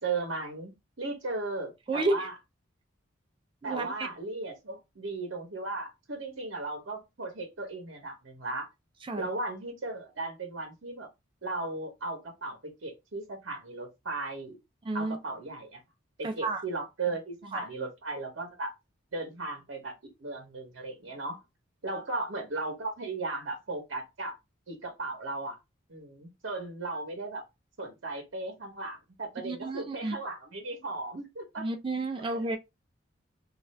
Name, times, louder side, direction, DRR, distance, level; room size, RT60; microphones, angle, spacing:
voice 1, 0.0-2.3 3.6-8.7 9.2-11.1 11.4-14.6 14.9-15.8 16.2-18.7 19.1-19.9 20.2-21.4 21.8-24.3 24.7-25.6 25.9-27.4 27.8-31.7 32.2-32.4, right 3 dB, 65° right, 0.8 m, -36 dB
voice 2, 1.9-2.3 3.6-4.1 9.0-9.3 14.8-15.2 16.2-16.6 17.5-17.6 29.4-30.2 31.6-32.6, right 2 dB, 25° right, 0.3 m, -31 dB
2.5 x 2.4 x 3.1 m
head